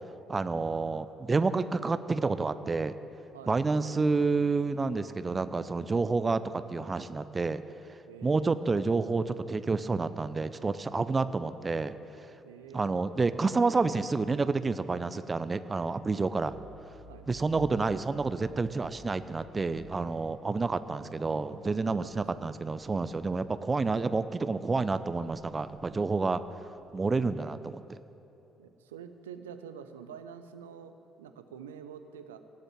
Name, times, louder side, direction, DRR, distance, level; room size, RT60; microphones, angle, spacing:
voice 1, 0.3-3.0 3.5-7.6 8.2-11.9 12.7-16.6 17.3-26.4 26.9-28.0, right 3 dB, 30° right, 13 dB, 0.7 m, -29 dB
voice 2, 8.1-8.5 12.4-13.0 17.1-17.3 20.3-20.4 21.7-22.5 27.1-27.2 28.6-32.4, right 7 dB, 80° right, 9 dB, 0.7 m, -47 dB
sound 1, 16.0-24.2 24.6-27.2, equal, 20° left, 2.1 m, -56 dB
18.0 x 7.8 x 8.9 m, 3.0 s
figure-of-eight pair, 50°, 0 cm